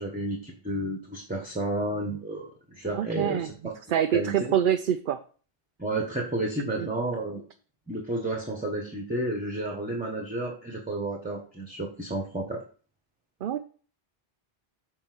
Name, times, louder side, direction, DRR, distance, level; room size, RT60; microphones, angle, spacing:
voice 1, 0.0-3.7 4.1-4.5 5.8-7.4 7.9-12.6, right 1 dB, 10° right, 0 dB, 1.3 m, -31 dB
voice 2, 2.9-3.5 3.9-5.2 6.8-6.9 13.4-13.6, right 9 dB, 60° right, 8 dB, 0.7 m, -26 dB
7.1 x 4.4 x 6.1 m, 0.41 s
omnidirectional pair, 1.1 m